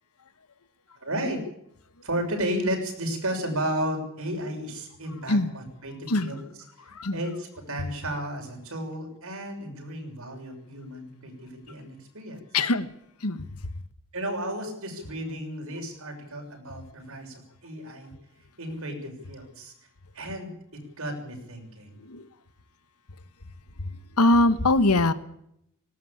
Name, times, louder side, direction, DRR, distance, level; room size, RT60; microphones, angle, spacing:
voice 1, 1.0-1.4 2.0-6.4 7.1-12.4 14.1-18.1 18.6-19.7 20.1-22.0, right 1 dB, 70° right, 3 dB, 6.5 m, -33 dB
voice 2, 6.9-7.2 12.5-12.9 13.2-13.5 22.0-22.3 23.8-25.1, left 2 dB, 90° left, 12 dB, 1.4 m, -23 dB
19.5 x 17.5 x 8.7 m, 0.74 s
head